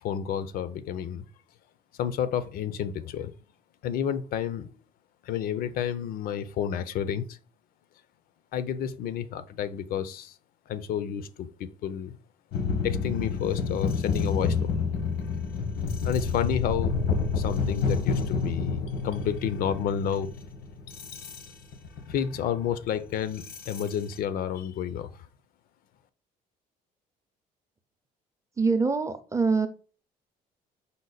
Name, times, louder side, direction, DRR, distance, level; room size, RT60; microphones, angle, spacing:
voice 1, 0.0-1.2 2.0-3.3 3.8-4.7 5.2-7.4 8.5-10.3 10.7-12.2 12.8-14.8 16.0-17.0 17.4-20.3 22.1-25.1, left 9 dB, 70° left, 13 dB, 0.5 m, -30 dB
sound 1, 12.5-24.2, left 5 dB, 90° left, 0.9 m, -29 dB
voice 2, 28.6-29.7, right 4 dB, 20° right, 9 dB, 0.6 m, -24 dB
5.2 x 2.1 x 3.9 m, 0.36 s
cardioid pair, 100°, 16 cm